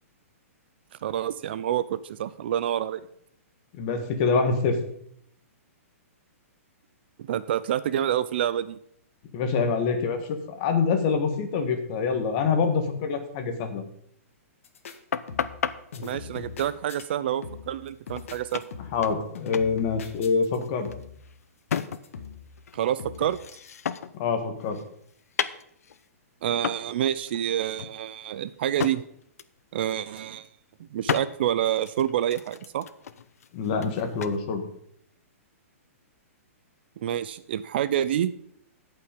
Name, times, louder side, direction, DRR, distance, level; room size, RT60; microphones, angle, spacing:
voice 1, 1.0-3.0 7.3-8.8 16.0-18.6 22.7-23.4 26.4-29.0 29.7-30.5 30.8-32.9 37.0-38.3, right 11 dB, 45° right, 15 dB, 0.4 m, -27 dB
voice 2, 3.8-4.8 9.3-13.8 18.9-20.9 24.1-24.8 33.5-34.6, left 5 dB, 30° left, 6 dB, 1.6 m, -25 dB
sound 1, 14.6-15.0 15.3-15.7 15.9-17.0 17.4-17.8 18.1-19.1 19.3-20.6 20.8-21.2 21.7-22.5 23.0-23.3, left 6 dB, 60° left, 1.5 m, -41 dB
sound 2, 15.1-15.8 17.9-18.0 18.1-18.3 18.5-19.3 19.5-19.7 20.0-22.3 22.6-24.2 24.6-26.1 26.6-26.9 27.3-27.4 27.8-29.0 29.4-29.6 29.9-30.5 31.1-31.3 31.8-34.4, left 7 dB, 85° left, 0.7 m, -33 dB
16.0 x 5.8 x 5.2 m, 0.69 s
hypercardioid pair, 170°, 8 cm